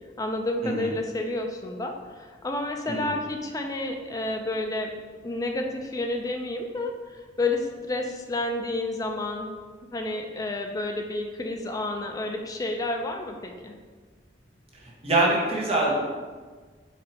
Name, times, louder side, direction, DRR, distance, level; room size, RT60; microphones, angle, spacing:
voice 1, 0.2-4.9 5.2-6.9 7.4-9.5 9.9-13.7, left 2 dB, 20° left, 3 dB, 0.4 m, -30 dB
voice 2, 14.8-16.0, right 2 dB, 35° right, -3 dB, 0.9 m, -24 dB
4.2 x 2.7 x 4.2 m, 1.5 s
head